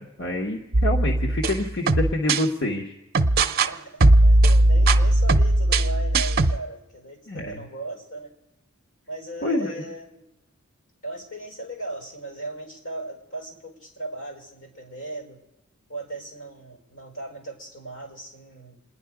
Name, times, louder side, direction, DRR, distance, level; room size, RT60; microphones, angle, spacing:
voice 1, 0.0-2.9 7.3-7.5 9.4-9.8, left 1 dB, 60° left, 1 dB, 1.3 m, -27 dB
sound 1, 0.7-2.4 3.1-3.7 4.0-6.6, right 2 dB, 45° right, 0.7 m, -18 dB
voice 2, 3.4-8.3 9.1-10.2 11.0-15.4 15.9-18.8, right 2 dB, 80° left, 2 dB, 5.0 m, -37 dB
28.0 x 10.5 x 4.9 m, 0.93 s
head